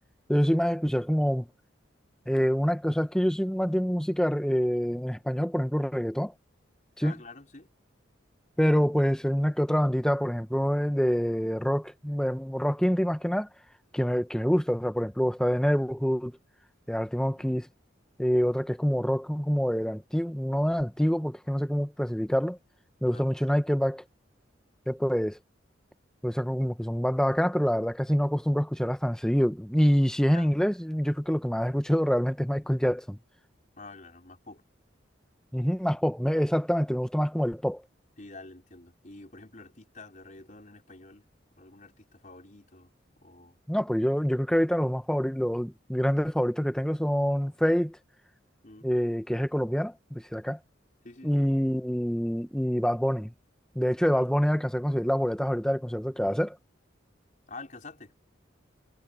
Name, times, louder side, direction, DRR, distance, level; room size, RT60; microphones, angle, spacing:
voice 1, 0.3-1.5 2.3-6.3 7.0-7.1 8.6-13.5 13.9-16.3 16.9-17.6 18.2-22.6 23.0-24.0 24.9-25.4 26.2-33.2 35.5-37.8 43.7-48.0 48.8-50.6 51.2-53.3 53.7-56.6, equal, 5° left, 1.0 m, -26 dB
voice 2, 7.0-7.7 17.4-17.6 23.0-23.3 30.3-30.5 33.8-34.6 38.2-41.3 41.6-42.9 43.2-43.6 48.6-48.9 51.0-51.5 54.1-54.2 57.5-58.1, left 3 dB, 40° left, 5.0 m, -47 dB
head